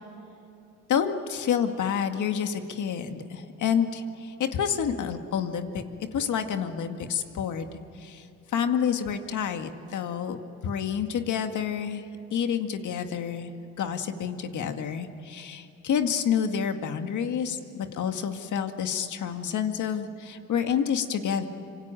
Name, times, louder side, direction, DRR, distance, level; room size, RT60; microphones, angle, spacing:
voice 1, 0.9-5.8 6.1-10.4 10.6-12.1 12.3-13.5 13.8-21.5, left 7 dB, 65° left, 6 dB, 2.0 m, -29 dB
26.0 x 25.0 x 9.0 m, 2.8 s
cardioid pair, 100°, 32 cm